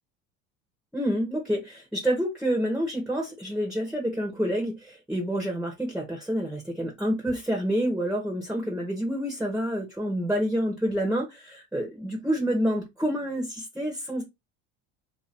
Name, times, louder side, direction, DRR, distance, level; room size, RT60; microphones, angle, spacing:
voice 1, 0.9-14.2, equal, ahead, 1.3 m, -28 dB
2.9 x 2.8 x 4.1 m
supercardioid pair, 90°, 35 cm